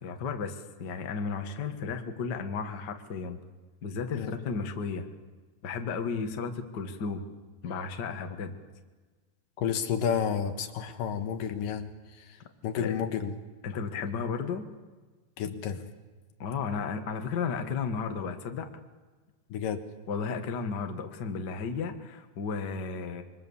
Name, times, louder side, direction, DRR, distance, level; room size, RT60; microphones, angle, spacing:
voice 1, 0.0-3.4 3.8-5.1 5.6-7.2 7.6-8.6 12.8-13.0 13.6-14.6 16.4-18.7 20.1-23.2, left 5 dB, 40° left, 6 dB, 1.6 m, -33 dB
voice 2, 9.6-11.9 12.2-12.3 12.6-13.3 15.4-15.9 19.5-19.8, left 7 dB, 70° left, 8 dB, 3.0 m, -30 dB
26.5 x 23.5 x 7.2 m, 1.3 s
omnidirectional pair, 4.1 m